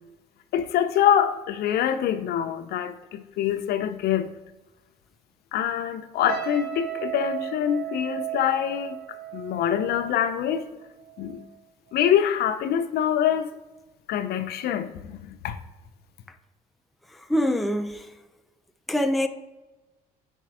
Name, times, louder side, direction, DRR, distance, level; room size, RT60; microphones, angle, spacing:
voice 1, 0.5-4.3 5.5-9.0 9.3-10.7 11.2-11.4 11.9-13.5 14.1-15.6, left 9 dB, 70° left, 0.6 m, -25 dB
sound 1, 6.3-11.6 11.9-12.2, right 13 dB, 70° right, 0.9 m, -36 dB
voice 2, 17.3-18.0 18.9-19.3, equal, ahead, 0.4 m, -23 dB
4.8 x 4.6 x 6.0 m
cardioid pair, 110°, 17 cm